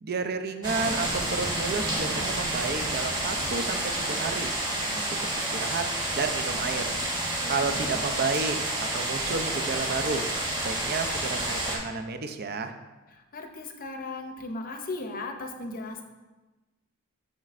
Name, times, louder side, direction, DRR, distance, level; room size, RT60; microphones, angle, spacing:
voice 1, 0.0-4.5 4.8-6.9 7.5-8.6 8.9-10.2 10.6-12.7, right 4 dB, 50° right, 8 dB, 0.5 m, -31 dB
sound 1, 0.6-11.8, right 1 dB, 20° right, 1.4 m, -29 dB
voice 2, 7.4-8.1 13.1-16.0, left 2 dB, 45° left, 5 dB, 0.6 m, -37 dB
7.3 x 6.5 x 2.5 m, 1.2 s
head